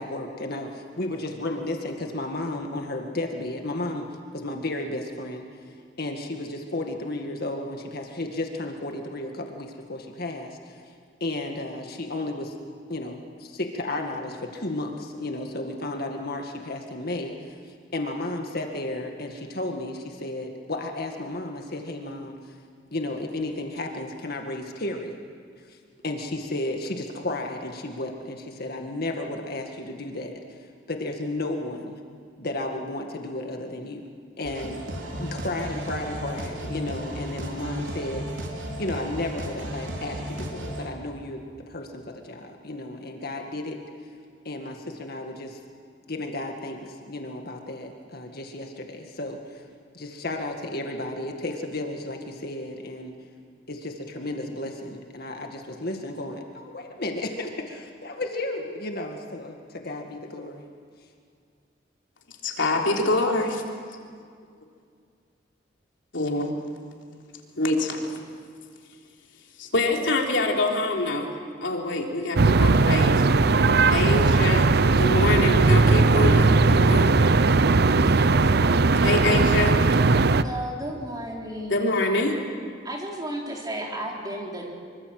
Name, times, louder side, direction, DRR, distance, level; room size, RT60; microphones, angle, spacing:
voice 1, 0.0-4.1 4.3-5.5 6.0-10.8 11.2-12.5 12.9-22.5 22.9-25.2 25.6-25.8 26.0-32.0 32.4-34.1 34.4-34.8 35.2-38.3 38.8-43.8 44.5-45.6 46.0-49.6 49.9-53.2 53.7-60.7, left 2 dB, 55° left, 3 dB, 1.9 m, -33 dB
sound 1, 34.4-40.9, equal, 80° right, 4.1 m, -34 dB
voice 2, 62.4-63.6 66.1-66.5 67.6-68.1 69.6-71.3 71.6-73.2 73.9-74.7 74.9-77.2 78.0-78.3 79.0-79.8 81.7-82.4, left 2 dB, 75° left, 0 dB, 3.5 m, -25 dB
sound 2, 72.4-80.4, right 3 dB, 60° right, 0.7 m, -18 dB
voice 3, 80.3-81.9 82.8-84.7, right 1 dB, 20° right, -1 dB, 3.9 m, -33 dB
25.0 x 24.5 x 7.8 m, 2.2 s
head